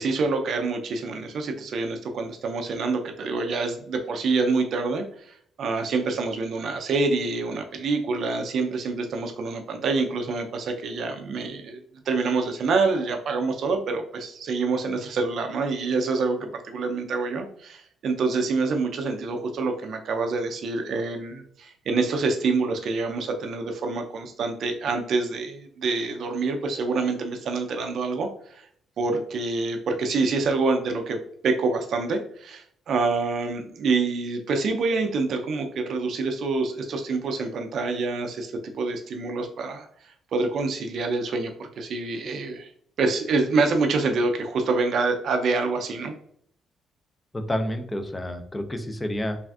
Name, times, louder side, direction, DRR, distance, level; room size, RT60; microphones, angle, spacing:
voice 1, 0.0-11.8 12.1-28.7 29.0-31.2 31.4-42.7 43.0-46.1, right 3 dB, 65° right, 4 dB, 0.4 m, -26 dB
voice 2, 47.3-49.4, left 1 dB, 15° left, 7 dB, 0.4 m, -29 dB
3.3 x 2.4 x 2.3 m, 0.64 s
cardioid pair, 90°, 0 cm